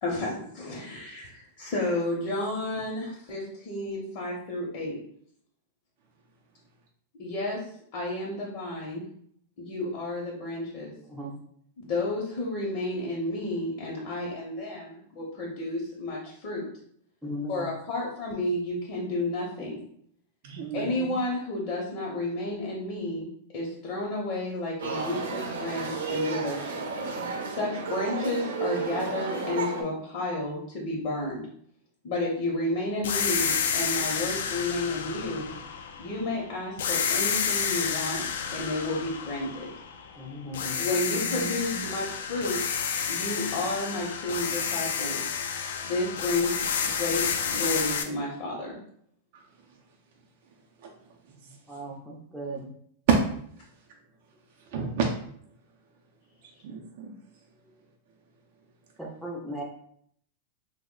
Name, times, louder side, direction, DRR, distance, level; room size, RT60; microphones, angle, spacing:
voice 1, 0.0-5.0 7.2-7.6 7.9-9.0 9.6-10.9 11.8-16.7 17.5-19.8 20.7-23.3 23.5-26.8 27.4-31.4 32.0-35.5 36.0-38.2 38.5-39.7 40.8-42.6 43.1-45.3 45.8-48.8, left 2 dB, 45° left, -2 dB, 0.7 m, -31 dB
voice 2, 17.2-17.7 40.2-40.8 51.7-52.7 54.7-54.9 59.0-59.6, equal, ahead, -3 dB, 0.5 m, -37 dB
voice 3, 20.4-21.0 41.1-41.9 54.7-55.1 56.6-57.1, right 6 dB, 55° right, -1 dB, 0.5 m, -33 dB
sound 1, 24.8-29.8, right 4 dB, 90° right, 0.7 m, -32 dB
sound 2, 33.0-36.3 36.8-40.2 40.5-48.0, left 7 dB, 80° left, 0.4 m, -30 dB
3.0 x 2.0 x 3.7 m, 0.66 s
supercardioid pair, 160°, 0 cm